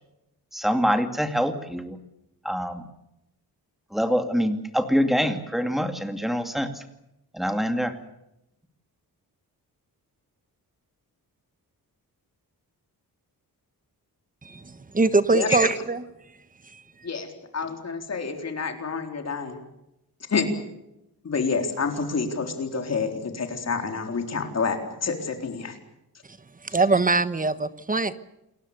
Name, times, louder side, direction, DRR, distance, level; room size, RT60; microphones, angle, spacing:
voice 1, 0.5-2.0 2.4-2.9 3.9-6.8 7.3-7.9, equal, ahead, 7 dB, 2.4 m, -25 dB
voice 2, 14.4-16.0 16.7-16.8 26.6-28.1, right 3 dB, 20° right, 13 dB, 1.2 m, -22 dB
voice 3, 17.5-19.6 20.3-20.5 21.2-25.7, left 5 dB, 45° left, 5 dB, 3.9 m, -28 dB
29.0 x 21.5 x 6.8 m, 0.88 s
wide cardioid pair, 165°, 37 cm